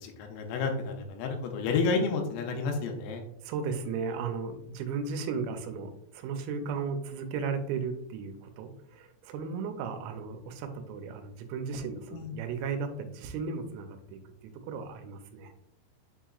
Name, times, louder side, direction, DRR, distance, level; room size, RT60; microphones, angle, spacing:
voice 1, 0.0-3.2 12.1-12.4, left 4 dB, 80° left, 3 dB, 3.1 m, -30 dB
voice 2, 3.4-14.2 14.6-15.5, right 5 dB, 85° right, 7 dB, 3.3 m, -35 dB
7.6 x 2.9 x 2.3 m, 0.74 s
omnidirectional pair, 5.9 m